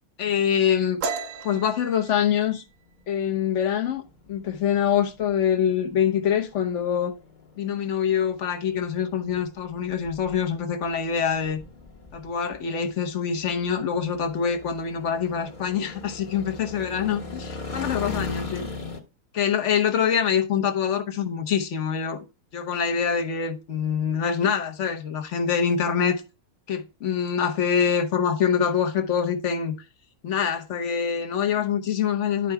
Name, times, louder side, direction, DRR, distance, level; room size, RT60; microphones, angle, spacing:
voice 1, 0.2-1.0 1.4-2.6 3.1-4.0 4.3-7.1 7.6-11.6 12.1-18.7 19.3-22.2 22.5-26.2 26.7-29.7 30.2-32.5, left 7 dB, 55° left, 1.2 m, -25 dB
sound 1, 1.0-4.4 4.8-5.1 5.5-6.0 6.3-7.0, right 4 dB, 60° right, 1.0 m, -36 dB
sound 2, 2.9-19.0, left 3 dB, 35° left, 1.2 m, -40 dB
11.0 x 4.4 x 3.4 m
omnidirectional pair, 1.6 m